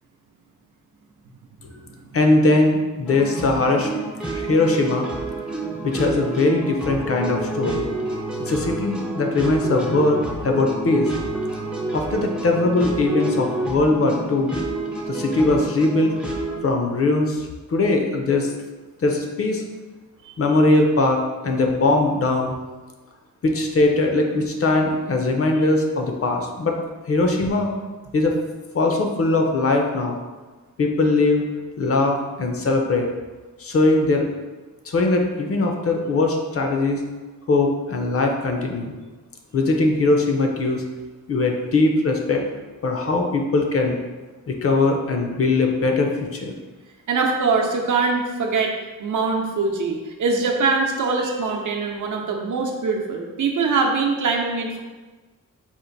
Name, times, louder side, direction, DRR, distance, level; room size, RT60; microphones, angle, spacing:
voice 1, 2.1-4.0 4.3-5.1 5.8-7.9 8.5-11.1 11.9-14.5 15.1-16.2 16.6-18.5 19.0-19.6 20.4-22.5 23.4-26.8 27.1-27.7 28.1-28.4 28.7-30.2 30.8-31.4 31.8-33.1 33.6-34.3 34.8-37.0 37.5-38.9 39.5-40.8 41.3-42.4 42.8-44.0 44.5-46.6, left 2 dB, 45° left, 2 dB, 0.5 m, -20 dB
sound 1, 3.1-16.6, right 2 dB, 5° right, 0.4 m, -28 dB
voice 2, 47.1-54.8, right 4 dB, 70° right, 1 dB, 0.7 m, -23 dB
4.4 x 2.5 x 3.9 m, 1.3 s
wide cardioid pair, 160°, 33 cm